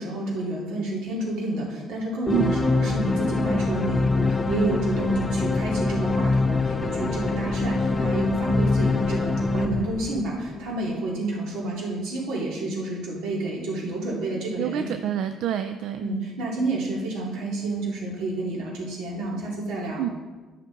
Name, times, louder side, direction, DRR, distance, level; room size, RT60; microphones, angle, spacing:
voice 1, 0.0-14.9 16.0-20.0, right 2 dB, 85° right, -4 dB, 2.5 m, -29 dB
sound 1, 2.3-10.7, left 3 dB, 15° left, 0.3 m, -24 dB
voice 2, 14.6-16.1 20.0-20.1, right 10 dB, 65° right, 9 dB, 0.4 m, -27 dB
11.0 x 5.9 x 3.9 m, 1.3 s
cardioid pair, 160°, 0 cm